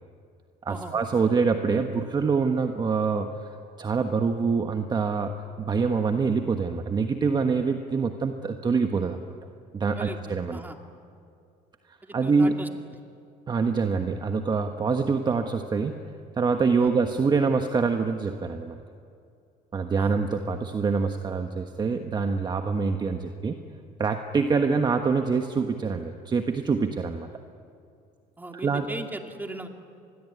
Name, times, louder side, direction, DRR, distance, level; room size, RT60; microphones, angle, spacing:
voice 1, 0.6-9.2 9.7-10.6 11.9-12.5 13.5-16.0 16.3-18.8 19.7-23.6 24.0-27.3 28.5-28.8, right 5 dB, 25° right, 6 dB, 1.4 m, -25 dB
voice 2, 12.0-12.7 16.8-16.9 20.0-20.2 28.4-29.7, right 2 dB, 10° right, 4 dB, 2.5 m, -37 dB
26.5 x 21.5 x 9.5 m, 2.4 s
cardioid pair, 120°, 16 cm